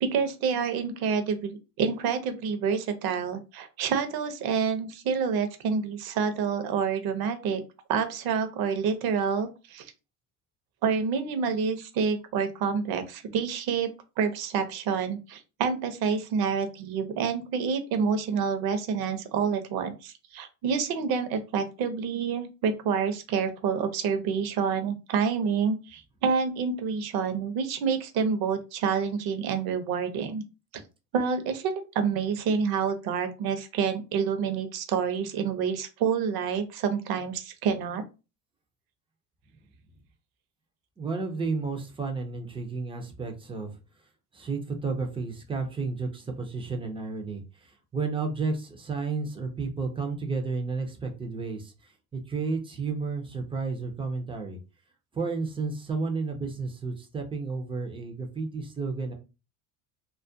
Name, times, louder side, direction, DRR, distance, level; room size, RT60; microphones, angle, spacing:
voice 1, 0.0-7.6 7.9-9.9 10.8-13.9 14.2-30.4 31.1-38.0, right 6 dB, 55° right, 8 dB, 0.6 m, -28 dB
voice 2, 41.0-43.8 44.3-54.6 55.1-59.1, right 4 dB, 15° right, 3 dB, 0.3 m, -32 dB
2.3 x 2.1 x 2.5 m, 0.30 s
supercardioid pair, 120°, 44 cm